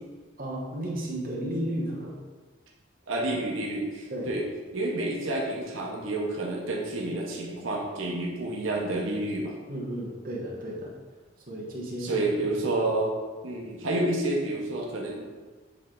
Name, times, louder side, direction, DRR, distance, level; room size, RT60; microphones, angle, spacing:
voice 1, 0.4-2.2 4.1-4.4 9.7-10.9 11.4-12.2, right 1 dB, 45° right, -4 dB, 1.1 m, -33 dB
voice 2, 3.1-4.4 4.7-9.5 12.0-13.1 13.4-15.3, right 2 dB, 85° right, -1 dB, 0.9 m, -29 dB
8.1 x 3.3 x 3.8 m, 1.4 s
head